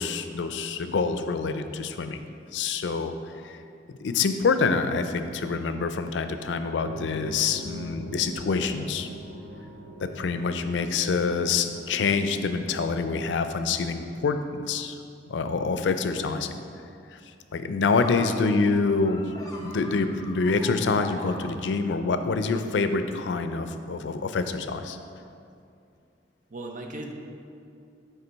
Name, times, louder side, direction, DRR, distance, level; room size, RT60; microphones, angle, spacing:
voice 1, 0.0-2.2 2.5-3.6 4.0-9.1 10.0-15.0 15.3-16.6 17.1-17.2 17.5-19.3 19.6-25.0, left 4 dB, 90° left, 9 dB, 0.4 m, -26 dB
sound 1, 6.8-13.8, left 1 dB, 90° right, 0.9 m, -42 dB
sound 2, 17.9-22.1, left 1 dB, 20° left, 0.7 m, -43 dB
voice 2, 26.5-27.1, right 1 dB, 45° right, 3 dB, 0.6 m, -38 dB
6.7 x 4.5 x 4.5 m, 2.5 s
head